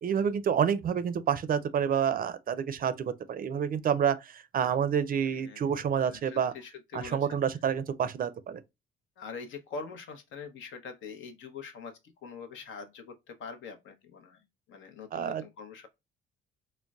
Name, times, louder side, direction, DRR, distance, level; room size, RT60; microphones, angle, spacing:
voice 1, 0.0-6.5 6.9-8.6 15.1-15.4, right 8 dB, 45° right, 0.4 m, -28 dB
voice 2, 5.3-7.4 9.2-14.4 14.7-15.9, left 5 dB, 75° left, 0.7 m, -44 dB
3.8 x 2.1 x 2.3 m
cardioid pair, 90°, 20 cm